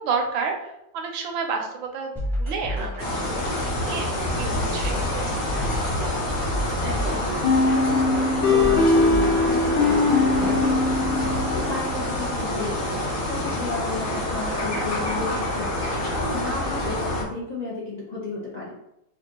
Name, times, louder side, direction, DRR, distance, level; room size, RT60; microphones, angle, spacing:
voice 1, 0.0-2.1 2.4-5.4 11.1-11.5, right 5 dB, 85° right, 3 dB, 1.4 m, -31 dB
sound 1, 2.2-10.6, equal, ahead, 0.5 m, -32 dB
sound 2, 3.0-17.2, left 1 dB, 50° left, 1.0 m, -27 dB
voice 2, 6.8-7.3 7.6-11.2 11.5-13.0 13.3-18.7, left 3 dB, 70° left, -6 dB, 0.4 m, -33 dB
sound 3, 7.4-12.1, left 3 dB, 85° left, 1.5 m, -21 dB
5.1 x 2.4 x 2.9 m, 0.83 s
omnidirectional pair, 2.1 m